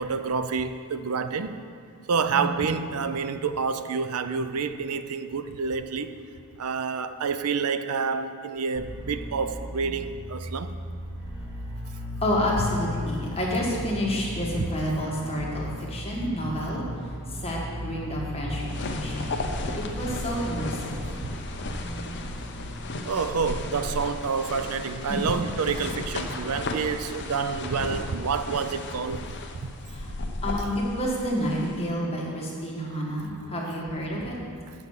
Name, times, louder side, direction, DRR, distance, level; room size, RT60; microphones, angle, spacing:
voice 1, 0.0-1.5 2.1-6.1 6.6-10.7 14.5-14.7 23.0-29.2 29.5-29.7 34.2-34.3, right 5 dB, 80° right, 10 dB, 0.5 m, -28 dB
sound 1, 8.7-22.8, equal, 10° right, 1.9 m, -36 dB
voice 2, 12.2-16.8 17.3-19.3 19.7-21.2 25.1-25.2 29.9-30.1 30.4-34.3, equal, 25° left, -4 dB, 1.5 m, -29 dB
sound 2, 18.5-31.9, left 2 dB, 50° left, 0.7 m, -35 dB
8.0 x 6.2 x 7.2 m, 2.2 s
head